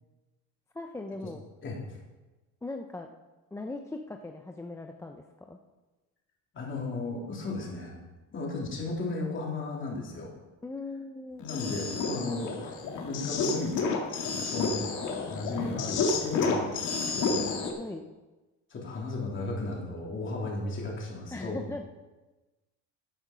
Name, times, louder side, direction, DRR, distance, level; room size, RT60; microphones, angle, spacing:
voice 1, 0.7-1.4 2.6-3.1 3.5-5.6 10.6-11.5 17.8-18.1 21.3-21.9, left 2 dB, 10° left, 3 dB, 0.5 m, -39 dB
voice 2, 6.5-8.0 8.3-10.3 11.4-13.8 14.3-17.5 18.7-21.6, left 2 dB, 35° left, -2 dB, 3.2 m, -35 dB
sound 1, 11.4-17.7, left 4 dB, 60° left, 2.0 m, -30 dB
10.0 x 8.8 x 6.1 m, 1.2 s
cardioid pair, 140°, 35 cm